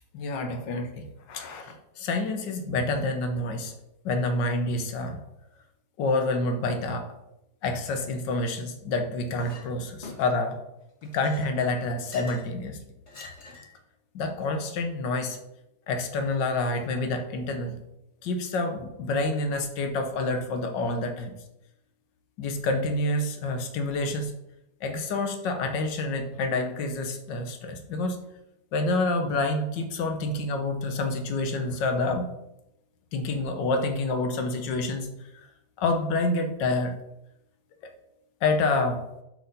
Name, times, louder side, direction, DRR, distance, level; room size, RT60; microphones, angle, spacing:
voice 1, 0.1-3.7 4.0-5.2 6.0-7.1 7.6-10.6 11.1-12.8 13.2-13.3 14.1-15.4 15.9-17.8 18.2-21.3 22.4-24.3 24.8-28.2 28.7-32.3 33.1-35.1 35.8-37.0 38.4-39.0, left 2 dB, 85° left, 6 dB, 1.7 m, -28 dB
Chink clink, 9.4-9.7 10.0-10.5 11.0-12.5 13.1-13.8, left 3 dB, 40° left, 2.1 m, -45 dB
7.9 x 5.0 x 5.3 m, 0.85 s
omnidirectional pair, 1.9 m